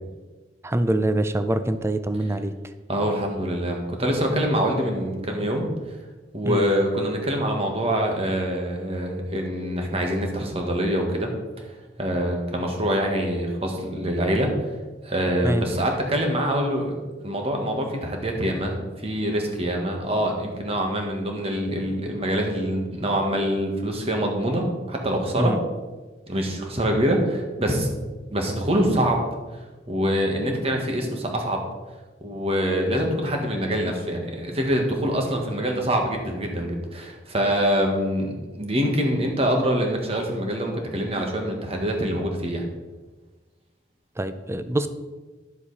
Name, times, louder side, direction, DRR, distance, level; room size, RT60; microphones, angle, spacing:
voice 1, 0.6-2.5 6.4-6.6 15.4-15.6 25.4-25.6 44.2-44.9, right 1 dB, 15° right, 11 dB, 0.5 m, -24 dB
voice 2, 2.9-6.0 6.3-11.3 11.6-14.7 15.0-16.9 17.2-25.6 26.3-27.9 28.3-29.2 29.5-31.6 32.2-42.6, equal, 35° right, 2 dB, 1.6 m, -25 dB
11.0 x 7.2 x 4.2 m, 1.3 s
head